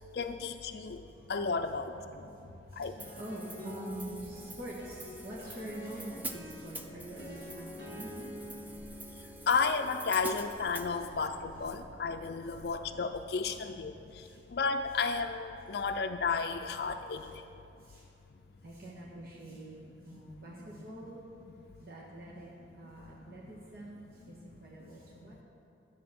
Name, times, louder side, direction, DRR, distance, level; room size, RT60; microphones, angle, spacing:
voice 1, 0.0-3.2 4.5-4.6 9.5-17.5 19.5-19.6 20.1-20.2 20.6-20.7 21.4-21.6 22.8-22.9 23.3-23.5 23.8-24.4 24.8-24.9, left 4 dB, 60° left, 7 dB, 0.4 m, -34 dB
voice 2, 2.5-2.9 3.2-8.3 14.2-14.4 17.8-18.0 18.6-21.2 21.8-22.5 22.7-25.4, right 1 dB, 55° right, -5 dB, 1.5 m, -45 dB
Hi-hat, 3.0-10.9, right 2 dB, 10° right, 0.5 m, -47 dB
sound 1, 3.0-12.6, left 1 dB, 75° right, 3.2 m, -48 dB
Volkswagen Beetle Idle Sound, 3.9-13.2, equal, 15° left, 1.8 m, -58 dB
12.0 x 8.4 x 5.9 m, 2.7 s
head